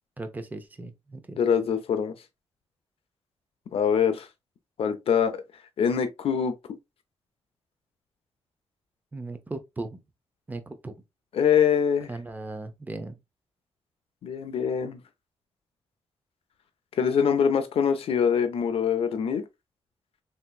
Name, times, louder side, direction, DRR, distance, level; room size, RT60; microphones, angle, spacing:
voice 1, 0.2-1.4 9.1-10.0 10.5-10.9 12.1-13.2, right 2 dB, 15° right, 0.5 m, -37 dB
voice 2, 1.4-2.1 3.7-4.3 4.8-5.4 5.8-6.5 11.3-12.1 14.2-15.0 17.0-19.4, left 7 dB, 70° left, 0.5 m, -24 dB
3.3 x 2.9 x 2.2 m
cardioid pair, 120°, 10 cm